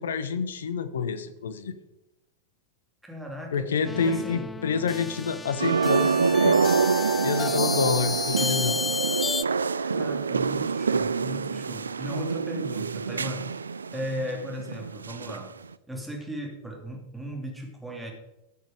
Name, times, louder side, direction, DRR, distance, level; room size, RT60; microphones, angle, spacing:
voice 1, 0.0-1.8 3.5-6.9 7.2-8.8, left 6 dB, 65° left, 12 dB, 0.9 m, -28 dB
voice 2, 3.0-4.5 9.9-13.6 13.9-15.5 15.9-18.1, equal, 5° right, 0 dB, 2.8 m, -37 dB
sound 1, 3.9-9.4, left 4 dB, 15° left, 0.4 m, -31 dB
sound 2, 5.6-15.4 15.7-15.8, right 5 dB, 75° right, 0.3 m, -26 dB
13.5 x 6.5 x 5.0 m, 0.93 s
figure-of-eight pair, 90°, 0 cm